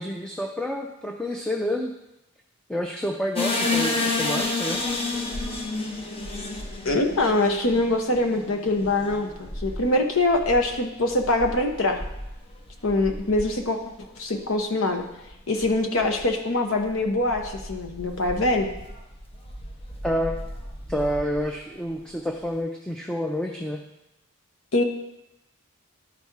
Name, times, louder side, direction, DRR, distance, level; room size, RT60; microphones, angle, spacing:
voice 1, 0.0-1.9 2.7-4.8 20.0-20.5 20.9-23.8, equal, 5° left, 1 dB, 0.5 m, -29 dB
sound 1, 3.3-14.2 14.5-14.6 15.1-15.4 15.6-16.3 16.8-21.5, left 2 dB, 25° left, 0.9 m, -32 dB
voice 2, 6.8-12.0 12.8-13.8 14.2-15.0 15.5-18.7 24.7-24.8, left 2 dB, 65° left, 4 dB, 1.0 m, -23 dB
11.5 x 4.3 x 4.7 m, 0.89 s
head